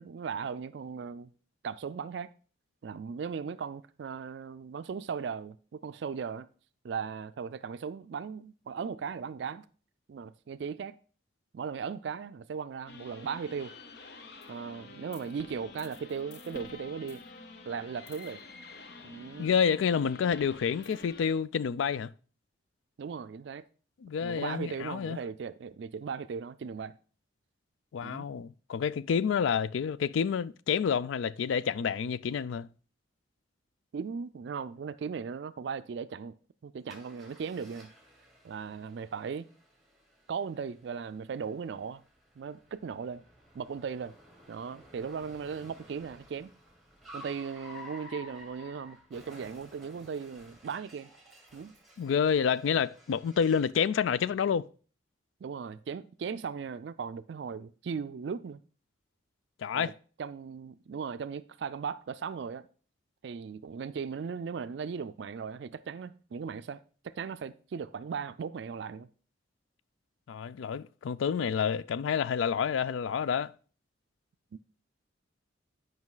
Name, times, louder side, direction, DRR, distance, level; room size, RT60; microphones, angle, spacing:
voice 1, 0.0-1.3 1.6-2.3 2.8-6.5 6.8-9.6 10.1-11.0 11.5-13.7 14.5-17.2 17.7-18.4 19.0-19.5 23.0-23.6 24.2-27.0 28.0-28.3 33.9-36.4 36.6-37.9 38.4-39.5 40.3-42.0 42.4-43.2 43.5-44.1 44.5-46.5 47.1-51.1 51.5-51.7 55.4-58.6 59.7-59.9 60.2-62.7 63.2-69.1, right 6 dB, 65° right, 0.3 m, -37 dB
sound 1, 12.9-21.3, left 3 dB, 55° left, 0.8 m, -48 dB
voice 2, 19.4-22.1 24.0-25.2 27.9-32.7 52.0-54.7 59.6-59.9 70.3-73.5, left 7 dB, 85° left, 0.3 m, -29 dB
Car, 36.9-53.8, left 1 dB, ahead, 1.5 m, -53 dB
9.6 x 5.2 x 3.9 m
head